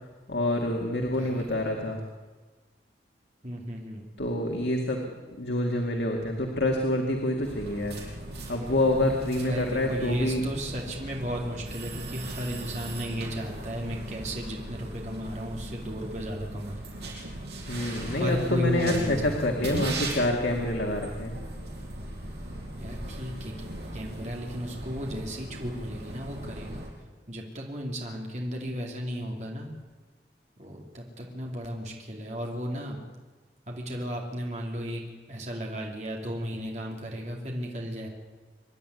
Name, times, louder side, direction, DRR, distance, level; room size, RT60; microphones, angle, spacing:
voice 1, 0.3-2.0 4.2-5.0 5.4-7.9 8.5-10.4 17.7-21.4, left 1 dB, 85° left, 1 dB, 2.3 m, -27 dB
voice 2, 1.0-1.5 3.4-4.1 9.4-16.8 18.1-19.5 22.8-23.5 23.9-26.8 27.3-29.7 30.6-33.0 33.7-35.0 35.3-38.1, equal, 40° right, 0 dB, 2.8 m, -34 dB
sound 1, 7.4-26.9, right 1 dB, 70° right, 6.5 m, -38 dB
26.0 x 11.0 x 9.6 m, 1.4 s
head